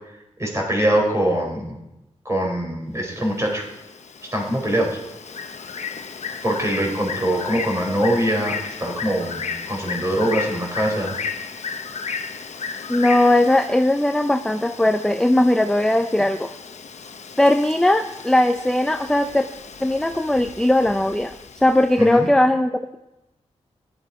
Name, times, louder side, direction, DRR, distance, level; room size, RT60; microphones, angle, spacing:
voice 1, 0.4-1.8 2.2-3.6 4.3-5.0 6.4-9.4 9.7-11.2 22.0-22.3, right 1 dB, 25° right, 0 dB, 4.2 m, -23 dB
Bird, 3.3-22.0, left 5 dB, 70° left, 1.0 m, -34 dB
voice 2, 12.9-16.5 17.4-19.5 19.8-23.0, left 1 dB, 5° left, 7 dB, 0.5 m, -19 dB
16.0 x 11.5 x 4.8 m, 0.94 s
wide cardioid pair, 90°, 12 cm